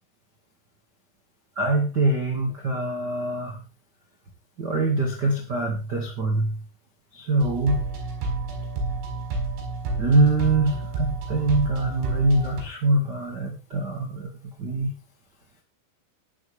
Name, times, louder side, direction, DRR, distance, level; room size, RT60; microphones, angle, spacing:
voice 1, 1.5-3.6 4.6-6.6 7.1-7.8 10.0-14.3 14.6-14.9, right 2 dB, 40° right, 1 dB, 1.6 m, -24 dB
sound 1, 7.4-12.6, right 3 dB, 60° right, 6.9 m, -30 dB
15.0 x 11.5 x 3.6 m, 0.32 s
omnidirectional pair, 6.0 m